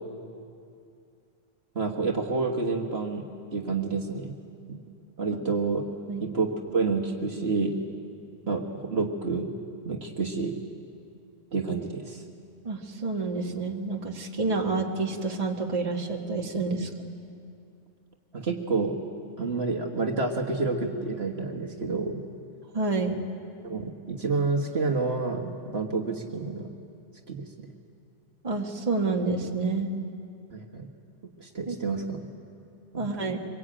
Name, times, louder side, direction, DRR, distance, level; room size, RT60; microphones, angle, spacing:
voice 1, 1.8-3.3 3.5-4.3 4.7-4.8 5.2-5.8 6.2-7.8 8.5-9.5 9.8-10.6 11.5-12.2 18.3-19.0 19.4-22.2 23.6-26.7 27.3-27.7 30.5-30.9 31.4-32.3 32.9-33.3, right 4 dB, 55° right, 1 dB, 1.9 m, -29 dB
voice 2, 12.6-16.9 22.7-23.2 28.4-29.9 31.7-31.8 33.0-33.4, right 3 dB, 30° right, 1 dB, 1.8 m, -28 dB
25.0 x 22.0 x 8.9 m, 2.5 s
omnidirectional pair, 1.3 m